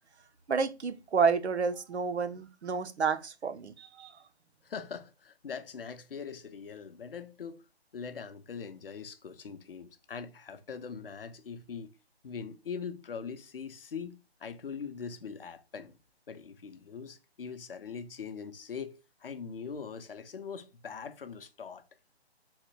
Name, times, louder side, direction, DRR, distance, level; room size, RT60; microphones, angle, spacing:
voice 1, 0.5-4.2, right 5 dB, 85° right, 0.6 m, -30 dB
voice 2, 4.6-7.6 7.9-11.9 12.2-16.0 16.3-21.8, left 6 dB, 60° left, 0.5 m, -42 dB
3.8 x 2.1 x 3.0 m
figure-of-eight pair, 150°, 33 cm